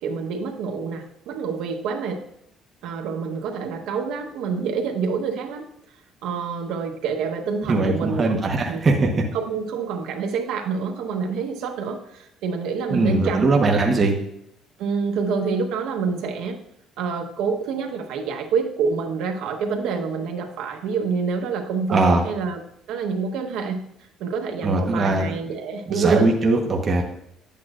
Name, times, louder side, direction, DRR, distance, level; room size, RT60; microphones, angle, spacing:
voice 1, 0.0-2.2 2.8-5.7 6.2-13.5 14.8-16.6 17.0-22.6 22.9-23.8 24.2-26.3, right 5 dB, 80° right, 3 dB, 1.0 m, -27 dB
voice 2, 7.7-9.1 12.9-14.1 21.9-22.2 24.6-25.3 25.9-27.0, right 3 dB, 30° right, 0 dB, 1.1 m, -20 dB
9.7 x 8.6 x 2.5 m, 0.77 s
cardioid pair, 145°, 0 cm